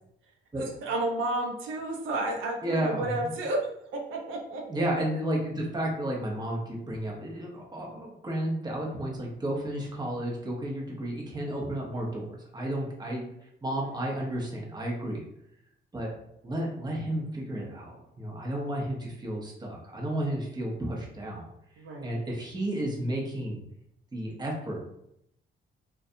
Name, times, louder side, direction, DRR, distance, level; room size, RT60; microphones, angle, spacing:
voice 1, 0.2-4.8 13.7-14.1 21.8-22.2, right 2 dB, 85° right, 1 dB, 0.5 m, -32 dB
voice 2, 2.6-3.0 4.7-13.3 13.6-15.2 15.9-16.1 16.4-21.4 22.0-23.6 24.1-24.8, right 1 dB, 20° right, -2 dB, 0.8 m, -32 dB
2.5 x 2.2 x 2.6 m, 0.77 s
cardioid pair, 90°, 20 cm